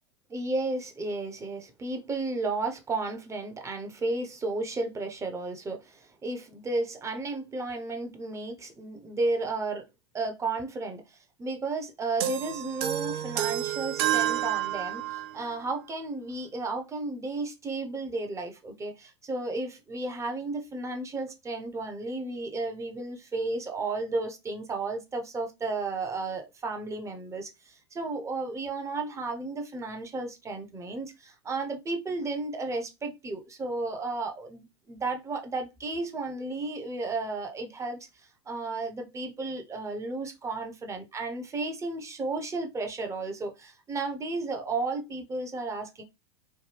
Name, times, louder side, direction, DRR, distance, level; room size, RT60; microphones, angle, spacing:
voice 1, 0.3-9.9 10.1-46.0, right 3 dB, 20° right, 0.8 m, -33 dB
sound 1, 12.2-15.4, right 12 dB, 55° right, 0.5 m, -29 dB
3.2 x 2.1 x 3.3 m
figure-of-eight pair, 90°, 16 cm